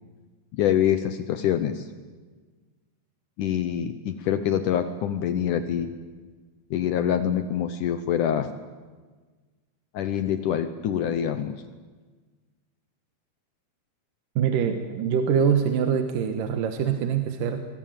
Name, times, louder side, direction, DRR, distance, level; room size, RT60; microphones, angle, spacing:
voice 1, 0.5-1.9 3.4-5.9 6.7-8.5 9.9-11.5, left 9 dB, 75° left, 10 dB, 1.9 m, -25 dB
voice 2, 14.4-17.6, right 7 dB, 65° right, 7 dB, 2.6 m, -24 dB
24.0 x 20.5 x 9.1 m, 1.4 s
omnidirectional pair, 4.7 m